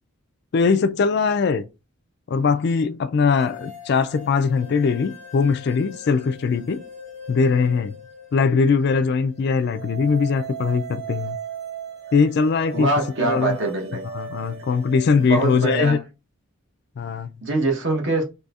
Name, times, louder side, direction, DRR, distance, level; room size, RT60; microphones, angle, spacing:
voice 1, 0.5-1.6 2.3-6.8 7.3-8.0 8.3-11.4 12.1-12.9 13.2-13.6 14.1-16.0 17.0-17.3, left 5 dB, 50° left, 0.3 m, -21 dB
sound 1, 3.3-15.7, right 4 dB, 35° right, 1.2 m, -39 dB
voice 2, 12.7-14.0 15.2-16.0 17.4-18.2, right 2 dB, 55° right, 1.0 m, -23 dB
4.1 x 2.7 x 2.4 m
head